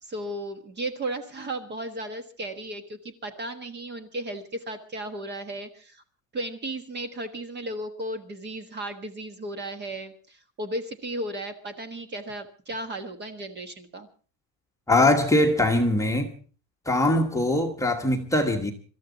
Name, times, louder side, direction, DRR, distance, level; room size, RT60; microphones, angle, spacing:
voice 1, 0.0-6.0 6.3-14.1, right 1 dB, 20° right, 1.3 m, -35 dB
voice 2, 14.9-16.3 16.9-18.7, left 1 dB, 5° left, 1.3 m, -22 dB
25.0 x 13.5 x 3.9 m
cardioid pair, 165°, 47 cm